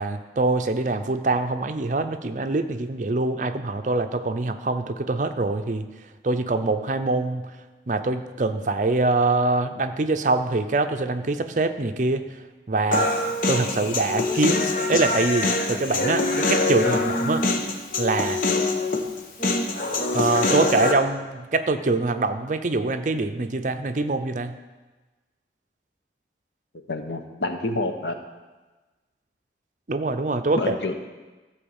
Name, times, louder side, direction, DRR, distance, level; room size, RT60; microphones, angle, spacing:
voice 1, 0.0-5.9 6.2-7.5 7.9-12.2 12.7-13.1 13.5-17.4 18.0-18.4 20.1-24.6 29.9-30.9, right 3 dB, 45° right, 7 dB, 0.6 m, -24 dB
Human voice, 12.9-20.9, left 2 dB, 50° left, 1.0 m, -24 dB
voice 2, 26.9-28.1 30.6-30.9, left 2 dB, 85° left, 6 dB, 1.0 m, -28 dB
13.5 x 4.5 x 7.1 m, 1.2 s
head